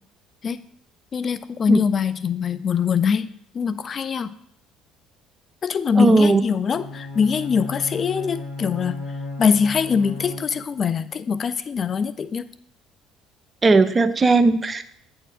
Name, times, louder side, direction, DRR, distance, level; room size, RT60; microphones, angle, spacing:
voice 1, 1.1-3.3 3.5-4.3 5.6-9.0 9.4-12.5, left 6 dB, 40° left, 13 dB, 0.4 m, -23 dB
voice 2, 6.0-6.4 13.6-14.8, right 3 dB, 30° right, 12 dB, 0.6 m, -17 dB
Bowed string instrument, 6.7-10.9, left 3 dB, 60° left, 3.0 m, -34 dB
8.9 x 4.5 x 4.9 m, 0.68 s
hypercardioid pair, 60°, 0 cm